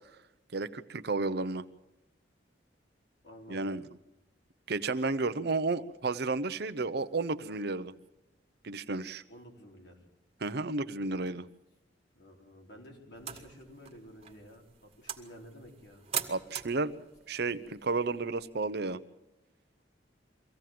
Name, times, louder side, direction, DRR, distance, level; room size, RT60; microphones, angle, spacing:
voice 1, 0.5-1.6 3.5-3.8 4.7-7.9 8.6-9.2 10.4-11.5 16.3-16.9 17.3-19.0, right 3 dB, 60° right, 12 dB, 0.8 m, -32 dB
voice 2, 3.2-3.8 9.3-10.0 12.1-16.0, equal, 70° left, 0 dB, 4.6 m, -51 dB
sound 1, 13.1-18.7, right 9 dB, 35° right, 1.9 m, -43 dB
24.0 x 16.0 x 7.6 m, 0.94 s
head